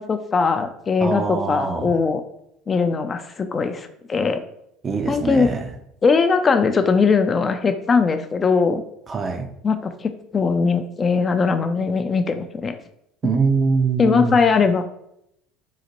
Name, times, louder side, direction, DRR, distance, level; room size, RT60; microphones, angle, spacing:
voice 1, 0.0-2.2 2.7-4.4 5.1-5.5 6.0-8.8 9.6-12.7 14.0-14.8, left 5 dB, 30° left, 0.3 m, -20 dB
voice 2, 1.0-2.0 4.8-5.7 9.1-9.5 13.2-14.4, right 4 dB, 35° right, 0.4 m, -23 dB
3.8 x 2.1 x 2.9 m
supercardioid pair, 80°, 0 cm